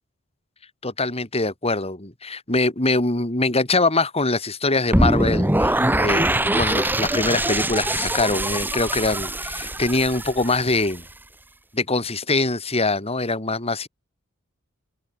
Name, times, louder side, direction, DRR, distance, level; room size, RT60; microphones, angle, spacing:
voice 1, 0.8-6.3 6.5-11.0 11.7-13.9, left 3 dB, 30° left, 4.5 m, -23 dB
sound 1, 4.9-11.0, right 1 dB, 10° right, 3.2 m, -23 dB
open air
head